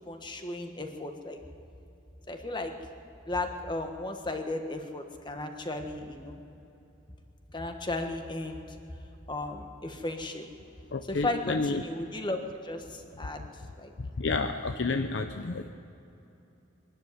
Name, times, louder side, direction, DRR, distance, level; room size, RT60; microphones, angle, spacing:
voice 1, 0.1-1.4 2.3-2.8 3.2-6.4 7.5-8.8 9.3-10.5 11.1-13.5 13.8-13.9, left 2 dB, 25° left, 5 dB, 1.5 m, -35 dB
voice 2, 10.9-11.8 14.0-15.7, left 3 dB, 70° left, 8 dB, 0.7 m, -30 dB
22.5 x 13.0 x 9.6 m, 2.9 s
head